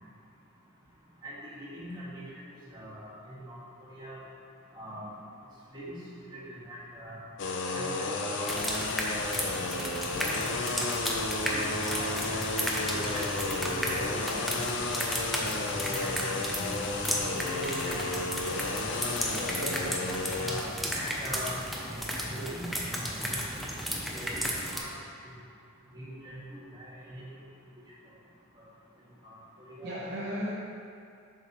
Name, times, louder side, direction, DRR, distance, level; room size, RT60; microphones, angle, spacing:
voice 1, 1.2-3.6 3.9-4.2 4.7-5.1 5.7-6.0 6.3-7.2 7.7-9.3 11.4-14.7 15.1-16.6 17.3-18.2 20.3-21.5 22.2-23.7 24.1-24.4 24.7-24.9 25.2-25.3 25.9-27.2 29.2-29.3 29.7-30.0, equal, 20° right, -9 dB, 1.6 m, -42 dB
sound 1, 7.4-22.3, left 3 dB, 55° left, 0.5 m, -33 dB
sound 2, 8.5-24.8, equal, ahead, 0.5 m, -34 dB
voice 2, 10.1-10.7 17.6-17.8 19.5-20.2 29.8-30.5, equal, 50° right, -7 dB, 0.9 m, -38 dB
7.4 x 5.9 x 3.0 m, 2.4 s
head